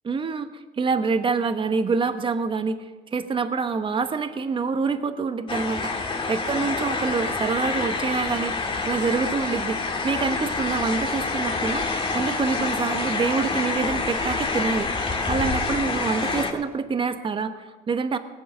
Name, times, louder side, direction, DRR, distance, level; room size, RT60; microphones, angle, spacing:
voice 1, 0.0-2.8 3.1-14.9 15.3-18.2, right 4 dB, 30° right, 9 dB, 1.0 m, -26 dB
sound 1, 5.5-16.5, left 3 dB, 30° left, 1.9 m, -27 dB
20.0 x 8.3 x 6.6 m, 1.3 s
cardioid pair, 110°, 17 cm